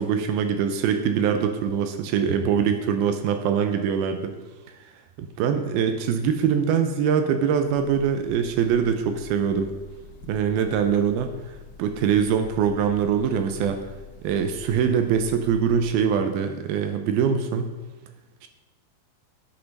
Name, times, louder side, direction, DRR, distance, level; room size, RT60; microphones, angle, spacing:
voice 1, 0.0-4.4 4.7-4.8 5.2-9.7 10.3-13.8 14.2-17.7 18.4-18.5, right 7 dB, 75° right, 7 dB, 2.3 m, -23 dB
Breathing / Bird, 7.5-16.1, left 5 dB, 65° left, 2.3 m, -45 dB
10.5 x 8.7 x 5.3 m, 1.2 s
omnidirectional pair, 4.8 m